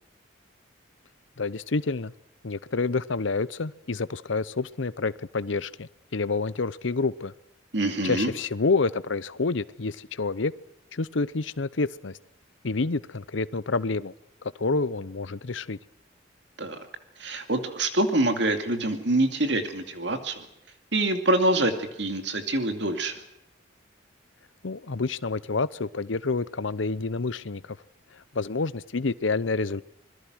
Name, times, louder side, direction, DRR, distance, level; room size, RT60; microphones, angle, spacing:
voice 1, 1.4-2.1 2.4-7.3 8.0-10.5 10.9-12.2 12.6-14.1 14.6-15.8 24.6-27.8 28.3-29.8, left 3 dB, 75° left, 16 dB, 0.8 m, -28 dB
voice 2, 7.7-8.3 16.6-16.9 17.2-20.5 20.9-23.1, right 2 dB, 60° right, 6 dB, 2.5 m, -25 dB
26.0 x 21.0 x 6.3 m, 0.82 s
head